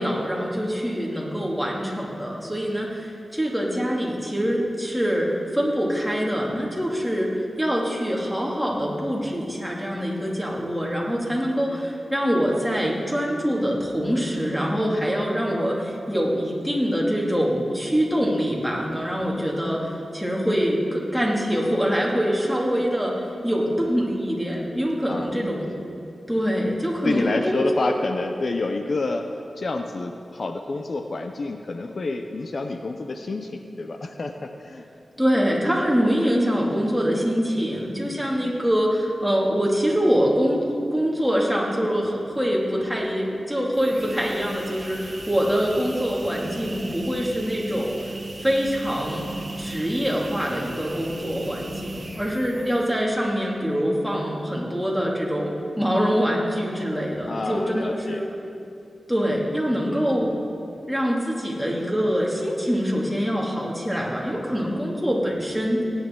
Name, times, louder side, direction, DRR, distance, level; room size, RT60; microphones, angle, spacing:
voice 1, 0.0-25.7 26.3-27.6 35.2-40.6 40.9-48.1 48.4-49.3 49.6-58.3 59.1-60.3 60.9-65.8, equal, ahead, -3 dB, 2.5 m, -24 dB
voice 2, 27.0-34.9 38.4-38.5 52.5-52.7 57.3-58.2 59.8-60.0, left 3 dB, 60° left, 6 dB, 0.6 m, -29 dB
sound 1, 43.6-53.1, right 2 dB, 40° right, 1.5 m, -37 dB
18.5 x 9.6 x 3.8 m, 2.6 s
cardioid pair, 60°, 0 cm